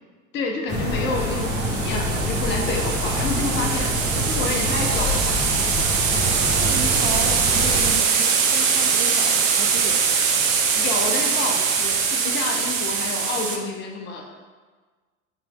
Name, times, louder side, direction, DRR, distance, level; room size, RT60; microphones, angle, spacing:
voice 1, 0.3-5.3 5.8-5.9 10.7-14.3, left 3 dB, 25° left, 1 dB, 0.6 m, -29 dB
sound 1, 0.7-7.9, equal, 10° right, 1.5 m, -26 dB
sound 2, 1.2-13.6, right 6 dB, 70° right, 0.7 m, -22 dB
voice 2, 6.1-10.0 12.6-12.8, right 5 dB, 25° right, 5 dB, 0.4 m, -34 dB
4.6 x 2.9 x 3.6 m, 1.4 s
figure-of-eight pair, 80°, 42 cm